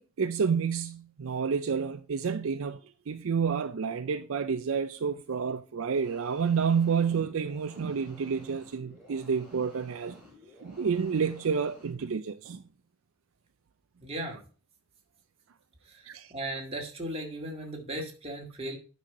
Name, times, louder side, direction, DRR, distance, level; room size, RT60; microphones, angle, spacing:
voice 1, 0.0-10.2 10.6-12.6 16.1-16.3, right 6 dB, 65° right, 0.5 m, -29 dB
sound 1, 5.8-12.0, left 1 dB, 5° right, 4.3 m, -54 dB
voice 2, 14.0-14.4 15.9-18.8, right 1 dB, 30° right, 2.0 m, -37 dB
9.1 x 5.6 x 4.9 m
head